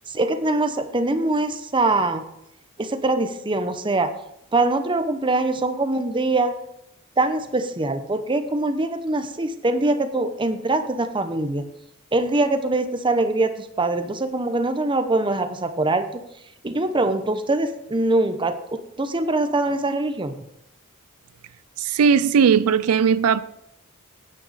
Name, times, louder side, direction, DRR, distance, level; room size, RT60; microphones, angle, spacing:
voice 1, 0.1-2.2 2.8-4.1 4.5-6.5 7.2-11.7 12.1-16.1 16.6-18.6 19.0-20.4, right 2 dB, 20° right, 8 dB, 0.8 m, -23 dB
voice 2, 21.8-23.4, right 6 dB, 80° right, 15 dB, 0.4 m, -18 dB
9.7 x 9.1 x 4.1 m, 0.79 s
head